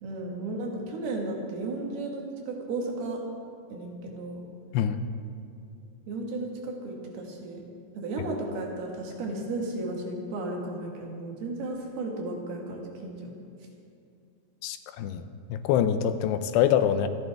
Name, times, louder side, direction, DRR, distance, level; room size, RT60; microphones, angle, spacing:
voice 1, 0.0-3.2 3.7-4.4 6.1-7.6 8.0-13.3, right 2 dB, 70° right, 0 dB, 3.5 m, -34 dB
voice 2, 4.7-5.1 14.6-15.2 15.5-17.1, left 9 dB, 80° left, 10 dB, 2.7 m, -25 dB
25.5 x 10.5 x 3.5 m, 2.6 s
omnidirectional pair, 4.9 m